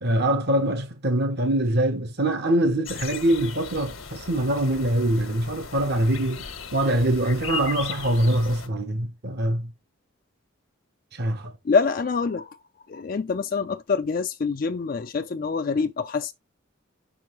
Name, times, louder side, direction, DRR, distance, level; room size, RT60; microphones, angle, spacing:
voice 1, 0.0-9.7 11.1-11.5, right 1 dB, 55° right, 0.9 m, -24 dB
sound 1, 2.9-8.7, left 6 dB, 80° left, 1.3 m, -37 dB
voice 2, 11.6-12.6 12.9-16.3, left 5 dB, 45° left, 0.4 m, -25 dB
6.8 x 6.1 x 3.1 m
head